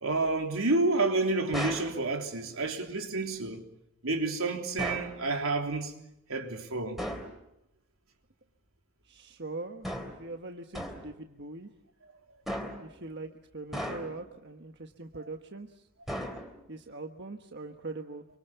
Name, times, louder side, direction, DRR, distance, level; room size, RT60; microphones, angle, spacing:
voice 1, 0.0-3.6 4.0-5.9 6.3-7.0, right 3 dB, 80° right, 3.4 m, -29 dB
sound 1, 1.5-2.0 4.8-5.2 7.0-7.4 9.8-10.3 10.7-11.1 12.5-12.9 13.7-14.3 16.1-16.7, equal, ahead, 3.4 m, -36 dB
voice 2, 9.0-11.7 12.8-15.9 16.7-18.3, right 3 dB, 55° right, 1.4 m, -42 dB
28.0 x 25.0 x 7.1 m
head